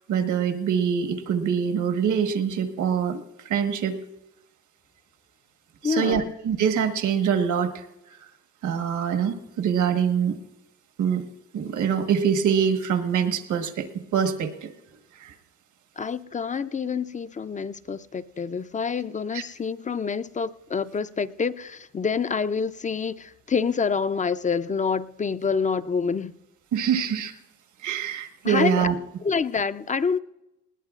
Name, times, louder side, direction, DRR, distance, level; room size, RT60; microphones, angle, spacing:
voice 1, 0.1-4.0 5.8-7.9 8.6-10.4 11.0-11.2 11.5-14.7 15.2-15.3 19.3-19.4 26.7-27.3 27.8-29.0, right 7 dB, 75° right, 1.4 m, -24 dB
voice 2, 5.8-6.3 16.0-26.3 28.4-28.9 29.2-30.2, left 5 dB, 25° left, 0.5 m, -27 dB
20.0 x 18.0 x 2.5 m
cardioid pair, 90°, 30 cm